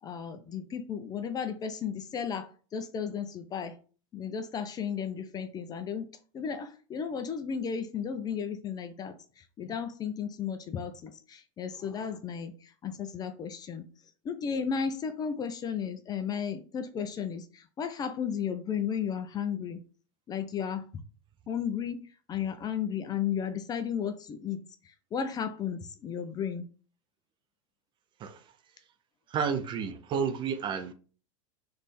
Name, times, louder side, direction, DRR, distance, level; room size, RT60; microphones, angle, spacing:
voice 1, 0.0-3.8 4.1-6.1 6.3-13.9 14.2-19.8 20.3-21.0 21.5-26.7, left 7 dB, 25° left, 0.4 m, -34 dB
voice 2, 29.3-30.9, right 6 dB, 30° right, 0.5 m, -31 dB
3.4 x 3.2 x 4.2 m
supercardioid pair, 130°, 17 cm